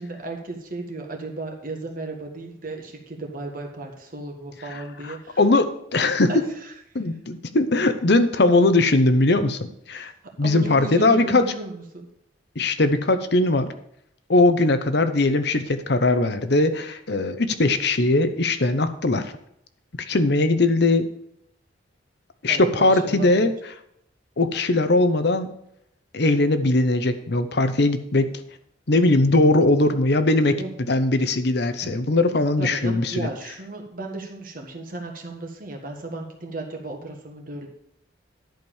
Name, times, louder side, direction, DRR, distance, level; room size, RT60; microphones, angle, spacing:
voice 1, 0.0-5.4 6.3-7.0 9.9-10.1 10.4-12.1 22.5-23.4 30.6-30.7 31.8-32.2 32.6-37.7, right 2 dB, 45° right, 2 dB, 1.6 m, -35 dB
voice 2, 5.4-6.3 6.9-9.6 9.9-10.1 10.4-11.4 12.6-13.7 14.3-19.3 20.0-21.1 22.4-23.5 24.4-25.5 26.1-28.3 28.9-30.6 30.9-33.3, left 2 dB, 60° left, 10 dB, 0.8 m, -20 dB
11.0 x 5.2 x 7.1 m, 0.74 s
head